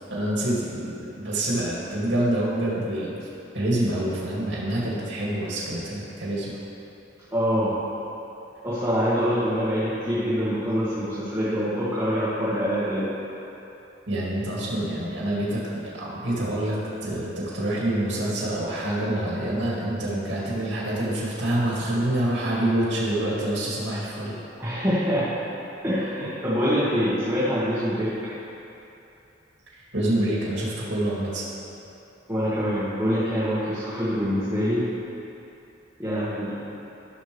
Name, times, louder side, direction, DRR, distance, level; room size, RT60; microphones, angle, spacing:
voice 1, 0.1-3.1 3.5-6.6 14.1-24.4 29.7-31.4, right 1 dB, 80° right, -6 dB, 2.2 m, -26 dB
voice 2, 7.3-7.7 8.6-13.1 24.6-25.3 25.8-28.1 32.3-34.9 36.0-36.5, equal, 15° right, -12 dB, 1.8 m, -25 dB
14.0 x 6.1 x 3.4 m, 2.9 s
head